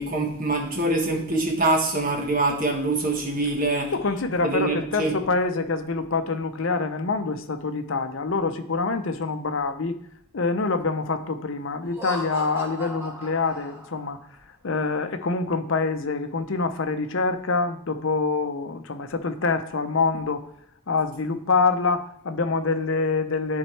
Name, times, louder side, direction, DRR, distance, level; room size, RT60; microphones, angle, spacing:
voice 1, 0.0-5.1, right 2 dB, 40° right, 1 dB, 1.3 m, -25 dB
voice 2, 3.9-10.0 10.3-14.2 14.6-20.5 20.9-23.6, left 4 dB, 60° left, 8 dB, 0.6 m, -25 dB
Laughter, 11.8-14.2, right 1 dB, 10° right, 1.3 m, -36 dB
10.5 x 4.4 x 3.2 m, 0.73 s
head